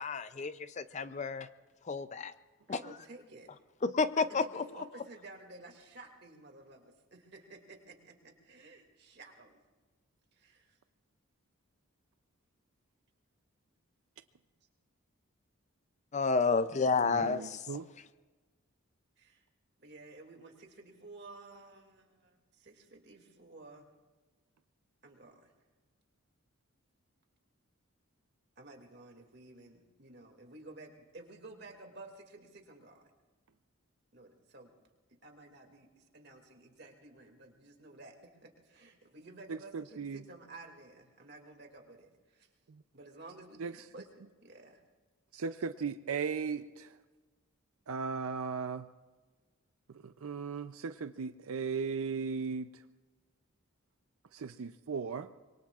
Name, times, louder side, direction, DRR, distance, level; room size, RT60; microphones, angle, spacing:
voice 1, 0.0-1.5 1.8-2.3 2.7-2.8 3.8-4.6 16.1-17.7, left 4 dB, 35° left, 13 dB, 0.4 m, -30 dB
voice 2, 2.7-3.5 4.2-9.6 10.3-10.8 17.3-17.6 19.2-19.4 19.8-23.9 25.0-25.5 28.6-33.1 34.1-34.7 35.2-38.2 38.4-42.5 42.9-44.8, right 2 dB, 50° right, 3 dB, 2.3 m, -53 dB
voice 3, 17.0-17.9 39.5-40.2 42.7-42.8 43.6-43.7 45.3-47.0 47.9-48.9 49.9-52.8 54.3-55.3, right 5 dB, 80° right, 10 dB, 0.5 m, -37 dB
25.5 x 22.5 x 2.4 m, 1.3 s
head